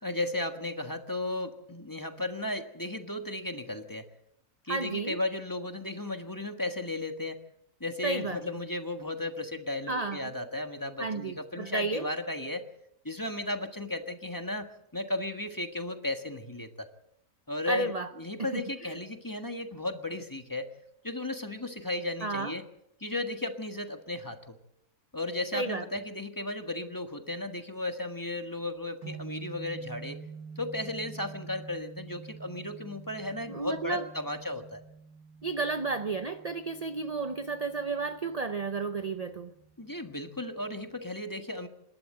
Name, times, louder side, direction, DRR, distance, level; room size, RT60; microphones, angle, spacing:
voice 1, 0.0-4.1 4.6-7.4 7.8-12.7 13.0-16.9 17.5-17.9 18.2-20.7 21.0-22.6 23.0-24.6 25.1-30.2 30.5-34.8 39.8-41.7, left 2 dB, 15° left, 6 dB, 1.4 m, -35 dB
voice 2, 4.7-5.2 8.0-8.4 9.9-10.3 11.0-12.1 17.7-18.1 18.5-18.9 22.2-22.6 25.5-25.8 33.5-34.1 35.4-39.5, right 3 dB, 35° right, 9 dB, 0.7 m, -32 dB
sound 1, 29.0-41.1, right 5 dB, 10° right, 5.4 m, -48 dB
27.0 x 12.5 x 7.7 m, 0.78 s
omnidirectional pair, 1.5 m